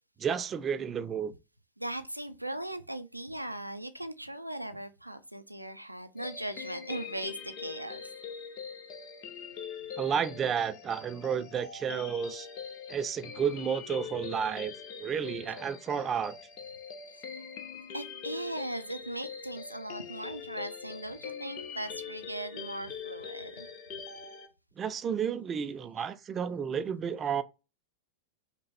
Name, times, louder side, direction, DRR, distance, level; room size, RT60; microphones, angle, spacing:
voice 1, 0.2-1.3 10.0-12.5 12.9-14.7 15.0-16.4 24.8-27.4, right 7 dB, 25° right, 0.4 m, -31 dB
voice 2, 1.8-8.0 17.9-23.7, right 1 dB, 90° right, 0.4 m, -39 dB
sound 1, 6.2-24.5, left 6 dB, 40° left, 0.9 m, -43 dB
5.3 x 2.2 x 3.3 m
figure-of-eight pair, 90°, 0 cm